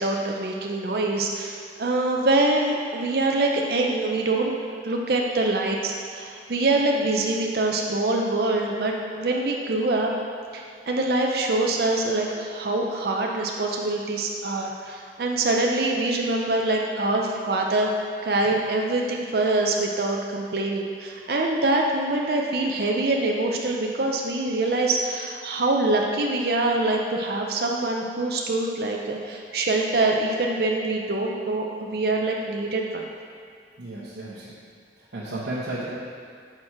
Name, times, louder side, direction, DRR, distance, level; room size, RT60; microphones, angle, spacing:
voice 1, 0.0-4.5 4.8-10.1 10.5-17.9 18.2-33.0, right 2 dB, 60° right, 0 dB, 0.5 m, -24 dB
voice 2, 33.8-34.5 35.1-35.9, right 2 dB, 90° right, -9 dB, 1.0 m, -33 dB
6.0 x 4.5 x 4.9 m, 2.2 s
head